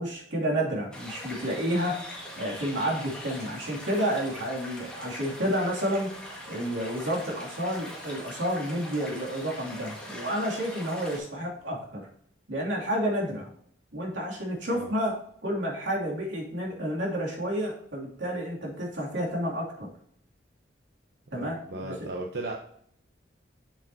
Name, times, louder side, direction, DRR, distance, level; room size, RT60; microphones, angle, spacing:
voice 1, 0.0-6.1 6.5-12.1 12.5-13.5 13.9-19.9 21.3-22.0, equal, 85° right, -2 dB, 2.7 m, -30 dB
sound 1, 0.9-11.2, equal, 5° left, 1.8 m, -42 dB
voice 2, 21.3-22.5, right 2 dB, 60° right, 0 dB, 1.0 m, -36 dB
7.5 x 7.5 x 2.8 m, 0.66 s
head